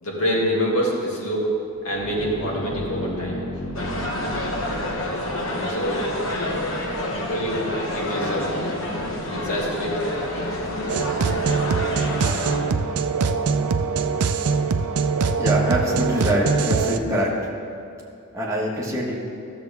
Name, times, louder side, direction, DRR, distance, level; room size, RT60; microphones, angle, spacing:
voice 1, 0.0-1.5 1.8-3.6 5.7-6.0 7.3-8.7 9.3-9.9, equal, 85° left, -3 dB, 2.0 m, -26 dB
sound 1, 1.7-13.3, equal, 40° left, 2.0 m, -37 dB
sound 2, 3.7-12.6, left 1 dB, 65° left, 1.1 m, -28 dB
sound 3, 10.9-17.0, right 5 dB, 85° right, 0.5 m, -23 dB
voice 2, 15.4-17.3 18.3-19.1, equal, 15° right, -4 dB, 1.3 m, -24 dB
13.5 x 7.1 x 3.5 m, 2.7 s
head